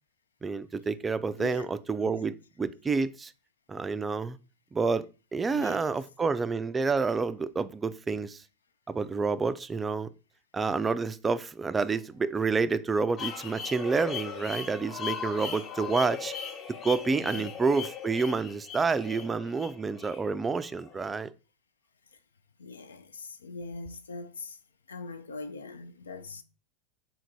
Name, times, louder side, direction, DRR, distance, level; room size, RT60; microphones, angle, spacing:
voice 1, 0.4-3.3 3.7-4.4 4.7-5.1 5.3-8.4 8.9-10.1 10.5-16.3 16.8-21.3, right 4 dB, 20° right, 0.3 m, -29 dB
sound 1, 13.2-21.0, left 7 dB, 35° left, 0.8 m, -38 dB
voice 2, 22.6-24.6 24.9-26.4, left 3 dB, 80° left, 0.4 m, -41 dB
3.7 x 2.5 x 4.4 m
figure-of-eight pair, 90°, 0 cm